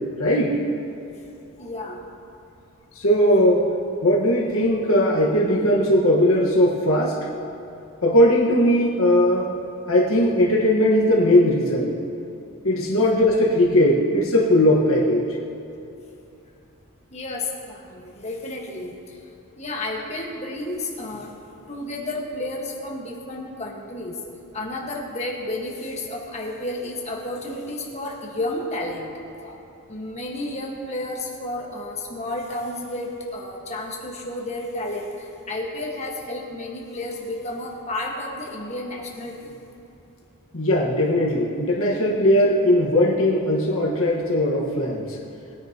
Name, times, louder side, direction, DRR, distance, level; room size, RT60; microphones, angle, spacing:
voice 1, 0.2-0.6 2.9-3.7 4.0-7.2 8.0-9.5 9.9-11.9 12.6-15.2 40.5-45.2, left 1 dB, 70° left, -3 dB, 1.5 m, -19 dB
voice 2, 1.6-2.0 13.2-13.4 17.1-19.3 19.6-21.3 21.6-24.2 24.5-39.6, left 1 dB, 30° left, -2 dB, 1.6 m, -32 dB
20.0 x 9.7 x 3.0 m, 2.7 s
head